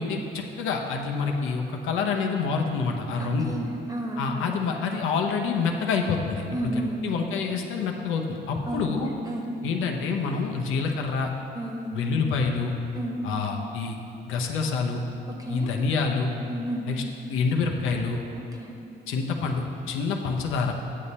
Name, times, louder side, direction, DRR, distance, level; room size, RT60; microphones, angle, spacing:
voice 1, 0.0-3.5 4.2-6.7 7.0-9.1 9.6-11.3 11.9-12.7 13.2-14.0 14.3-15.0 15.5-16.3 16.9-18.2 19.1-20.7, left 5 dB, 85° left, 2 dB, 0.8 m, -27 dB
voice 2, 3.2-4.6 6.5-7.1 8.7-9.0 9.2-9.4 11.5-12.0 12.9-13.2 15.4-15.7 16.4-16.8 18.6-18.7, right 1 dB, 20° right, 0 dB, 1.3 m, -31 dB
8.5 x 6.9 x 4.2 m, 2.8 s
cardioid pair, 90°, 20 cm